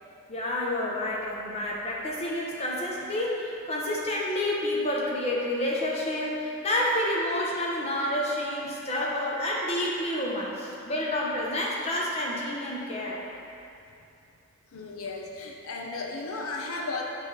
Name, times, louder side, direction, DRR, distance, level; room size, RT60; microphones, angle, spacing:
voice 1, 0.3-13.2, left 1 dB, 30° left, -3 dB, 0.7 m, -29 dB
voice 2, 14.7-17.0, left 3 dB, 80° left, 0 dB, 0.6 m, -35 dB
6.3 x 3.2 x 5.2 m, 2.6 s
head